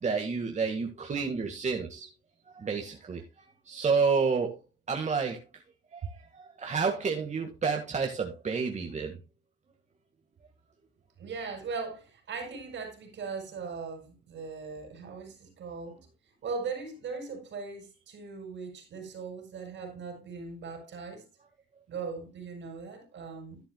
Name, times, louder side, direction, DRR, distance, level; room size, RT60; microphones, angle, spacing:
voice 1, 0.0-2.1 2.5-3.2 3.7-4.6 4.9-5.4 5.9-9.2, right 5 dB, 35° right, 1.7 m, -30 dB
voice 2, 11.2-16.0 16.4-21.2 21.9-23.6, right 4 dB, 70° right, 5.3 m, -39 dB
12.0 x 10.5 x 2.2 m
cardioid pair, 90°, 20 cm